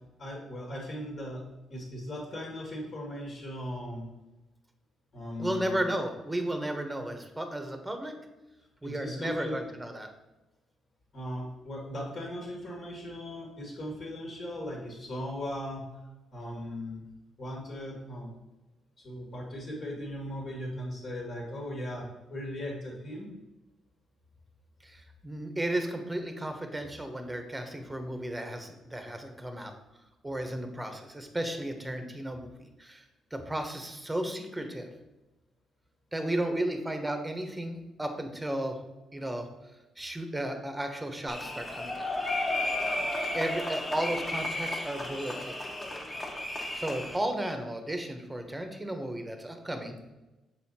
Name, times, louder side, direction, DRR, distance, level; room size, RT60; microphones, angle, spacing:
voice 1, 0.2-1.4 1.7-4.0 5.1-5.8 8.8-9.6 11.1-15.9 16.3-17.0 17.4-18.3 19.0-23.3, left 1 dB, 50° left, -2 dB, 2.0 m, -38 dB
voice 2, 5.4-8.1 8.8-10.1 24.8-29.8 30.2-32.5 32.8-33.0 33.3-34.9 36.1-38.8 39.1-39.5 40.0-42.1 43.3-45.6 46.7-50.0, right 1 dB, 10° right, 5 dB, 1.0 m, -34 dB
sound 1, 41.3-47.2, left 1 dB, 25° left, 1.4 m, -33 dB
7.0 x 4.2 x 4.2 m, 1.0 s
cardioid pair, 90°, 0 cm